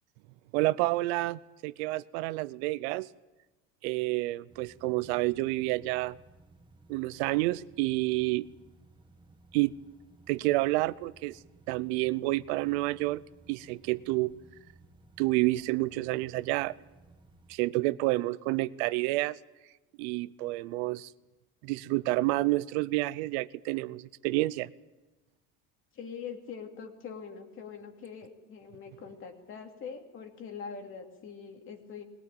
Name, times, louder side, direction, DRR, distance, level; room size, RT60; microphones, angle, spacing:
voice 1, 0.5-3.1 3.8-6.1 6.9-8.5 9.5-9.7 10.3-11.4 11.7-13.2 13.5-14.3 15.2-16.7 17.5-19.4 20.0-21.1 21.6-24.7, right 20 dB, 90° right, 18 dB, 0.7 m, -29 dB
sound 1, 4.5-17.5, right 2 dB, 15° right, 1.4 m, -58 dB
voice 2, 25.9-32.0, left 6 dB, 40° left, 4 dB, 2.7 m, -43 dB
21.0 x 18.0 x 8.9 m, 1.2 s
cardioid pair, 150°, 32 cm